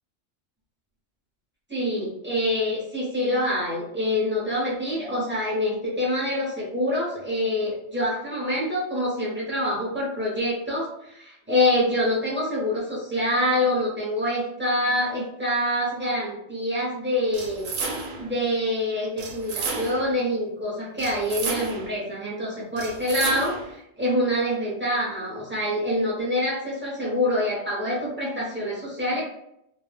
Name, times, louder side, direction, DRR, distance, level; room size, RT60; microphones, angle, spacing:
voice 1, 1.7-17.7 18.2-29.2, left 1 dB, 10° right, -5 dB, 0.6 m, -26 dB
sound 1, 17.3-18.3 19.2-20.2 21.0-22.0 22.8-23.7, right 4 dB, 85° right, 1.0 m, -32 dB
2.3 x 2.1 x 3.2 m, 0.78 s
omnidirectional pair, 1.3 m